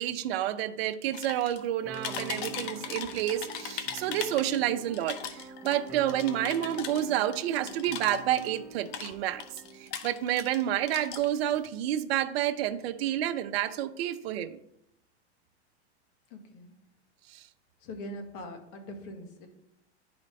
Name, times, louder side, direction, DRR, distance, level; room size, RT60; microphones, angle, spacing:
voice 1, 0.0-9.4 9.8-14.6 17.3-17.4, right 12 dB, 60° right, 11 dB, 0.6 m, -29 dB
sound 1, 1.1-1.7 1.9-4.7 4.9-8.6 8.9-10.6 10.9-11.7, left 8 dB, 30° left, 0.6 m, -39 dB
sound 2, 1.9-9.9, right 3 dB, 5° right, 0.9 m, -45 dB
voice 2, 16.3-16.7 17.8-19.5, left 1 dB, 50° left, 4 dB, 1.6 m, -42 dB
10.5 x 4.0 x 3.2 m, 0.79 s
supercardioid pair, 140°, 35 cm